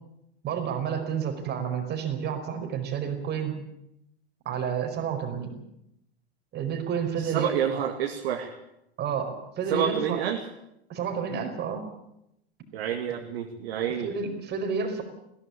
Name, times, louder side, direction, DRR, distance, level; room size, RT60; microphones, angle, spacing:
voice 1, 0.4-3.5 4.4-5.6 6.5-7.9 9.0-10.2 10.9-11.9 14.0-15.0, right 7 dB, 30° right, 7 dB, 4.8 m, -30 dB
voice 2, 7.2-8.5 9.7-10.4 12.7-14.1, right 9 dB, 55° right, 3 dB, 2.4 m, -28 dB
21.0 x 17.5 x 8.6 m, 0.82 s
figure-of-eight pair, 95°, 33 cm